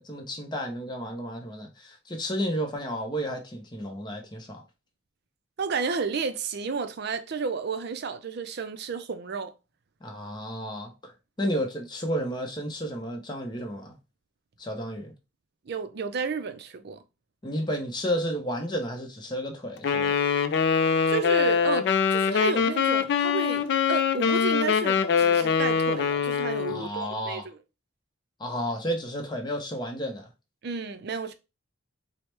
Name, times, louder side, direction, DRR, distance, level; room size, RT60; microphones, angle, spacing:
voice 1, 0.0-4.6 10.0-11.1 11.4-13.9 14.6-15.1 17.4-20.1 26.7-27.5 28.4-30.3, equal, 20° left, 0.6 m, -32 dB
voice 2, 5.6-9.5 15.7-17.0 21.1-27.6 30.6-31.3, right 5 dB, 50° right, 0.4 m, -32 dB
Wind instrument woodwind instrument, 19.8-26.8, left 6 dB, 50° left, 0.3 m, -23 dB
4.6 x 2.1 x 3.2 m
head